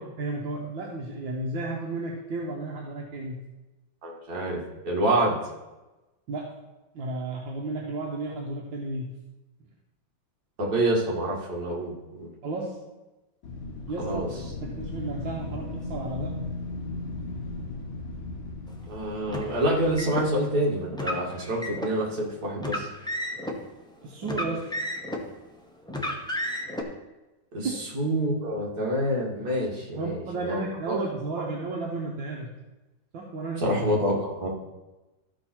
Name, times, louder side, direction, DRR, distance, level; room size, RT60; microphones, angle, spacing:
voice 1, 0.2-3.4 6.3-6.5 6.9-9.1 12.4-12.8 13.9-14.3 14.6-16.3 24.0-24.6 27.6-27.8 30.0-32.5 33.1-33.8, right 2 dB, 75° right, -1 dB, 1.8 m, -33 dB
voice 2, 4.0-5.4 10.6-12.3 14.0-14.3 18.9-22.9 27.5-27.7 27.9-30.2 30.5-30.6 30.9-31.0 33.6-34.5, right 1 dB, 55° right, -3 dB, 2.5 m, -27 dB
Wind, 13.4-20.4, left 2 dB, 70° left, 2.0 m, -37 dB
Car, 19.3-20.3 20.9-21.9 22.6-23.6 24.2-25.3 25.9-26.8, left 1 dB, 5° left, 0.4 m, -32 dB
13.0 x 5.3 x 4.4 m, 1.1 s
omnidirectional pair, 2.1 m